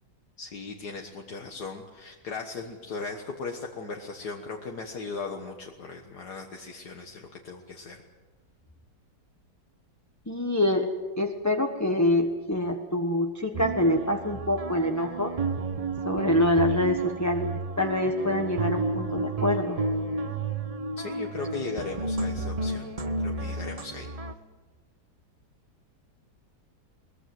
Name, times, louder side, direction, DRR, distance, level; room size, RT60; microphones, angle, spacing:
voice 1, 0.4-8.0 21.0-22.9 23.2-24.1, left 4 dB, 70° left, 2 dB, 2.0 m, -38 dB
voice 2, 10.3-10.9 11.2-15.3 16.0-19.8, left 1 dB, 10° left, 3 dB, 1.2 m, -25 dB
sound 1, 13.5-24.3, right 3 dB, 30° right, 0.8 m, -31 dB
22.5 x 20.5 x 7.8 m, 1.3 s
omnidirectional pair, 1.8 m